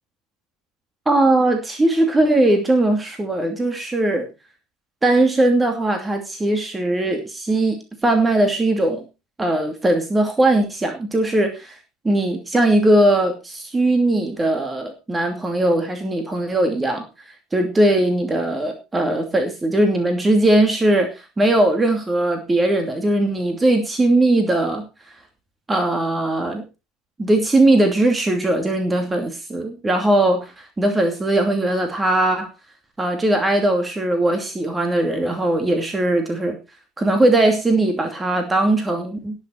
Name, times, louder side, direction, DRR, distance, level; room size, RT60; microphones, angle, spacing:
voice 1, 1.1-4.3 5.0-9.0 9.4-11.8 12.0-24.8 25.7-26.6 27.2-32.5 33.0-36.6 37.0-39.4, right 1 dB, 15° right, 5 dB, 2.6 m, -19 dB
19.0 x 6.7 x 4.5 m, 0.29 s
figure-of-eight pair, 70°, 0 cm